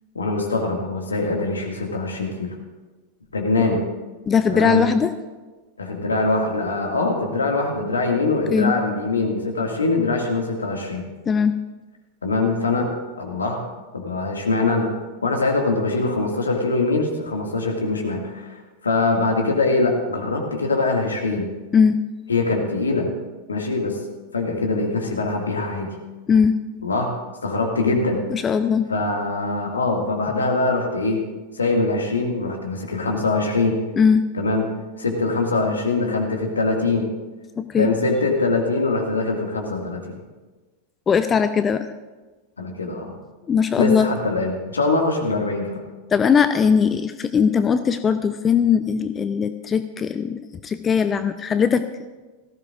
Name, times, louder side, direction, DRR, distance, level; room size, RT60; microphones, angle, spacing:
voice 1, 0.1-2.5 3.3-3.8 4.5-4.8 5.8-11.0 12.2-12.9 13.2-13.6 13.9-14.9 15.2-21.5 22.3-23.1 23.5-24.0 24.3-25.9 26.8-27.1 27.4-28.2 28.9-31.2 31.5-33.8 34.3-34.6 35.0-37.1 37.8-40.2 42.6-43.1 43.8-45.8, left 3 dB, 75° left, 1 dB, 2.1 m, -23 dB
voice 2, 4.3-5.1 8.5-8.7 11.3-11.6 21.7-22.0 26.3-26.6 28.3-28.9 34.0-34.3 37.6-37.9 41.1-41.9 43.5-44.1 46.1-51.9, left 6 dB, 20° left, 11 dB, 0.5 m, -19 dB
17.5 x 15.0 x 2.6 m, 1.2 s
figure-of-eight pair, 90°, 0 cm